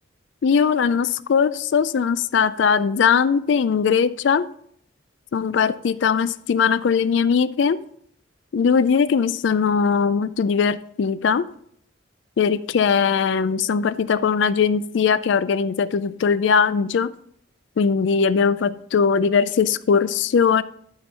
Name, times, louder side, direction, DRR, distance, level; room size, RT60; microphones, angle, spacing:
voice 1, 0.4-4.5 5.3-7.8 8.5-11.5 12.4-17.1 17.8-20.6, left 6 dB, 65° left, 15 dB, 0.4 m, -20 dB
12.5 x 4.5 x 5.4 m, 0.66 s
head